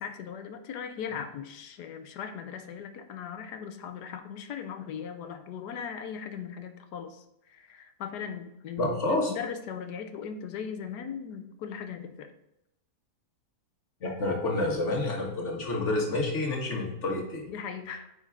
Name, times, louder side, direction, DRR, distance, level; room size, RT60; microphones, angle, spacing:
voice 1, 0.0-8.9 9.3-12.3 17.5-18.1, left 7 dB, 90° left, 8 dB, 1.4 m, -38 dB
voice 2, 8.8-9.3 14.0-17.4, left 2 dB, 45° left, 0 dB, 1.9 m, -29 dB
9.3 x 4.9 x 3.6 m, 0.86 s
omnidirectional pair, 1.7 m